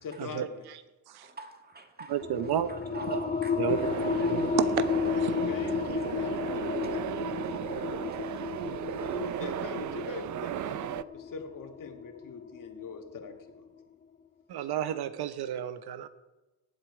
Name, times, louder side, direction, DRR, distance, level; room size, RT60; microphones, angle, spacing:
voice 1, 0.0-0.6 5.2-6.6 8.9-13.7, left 5 dB, 50° left, 4 dB, 2.1 m, -42 dB
voice 2, 1.2-2.1 2.9-3.7 4.2-4.6 6.8-6.9, right 3 dB, 20° right, 5 dB, 2.0 m, -44 dB
voice 3, 2.1-2.7 3.1-3.2 3.6-3.9 4.2-4.8 14.5-16.1, right 10 dB, 65° right, 12 dB, 1.1 m, -31 dB
sound 1, 2.2-13.4, left 6 dB, 20° left, 0.6 m, -33 dB
sound 2, 3.7-11.0, right 12 dB, 45° right, 0.5 m, -35 dB
18.0 x 8.0 x 5.0 m, 1.1 s
cardioid pair, 90°, 42 cm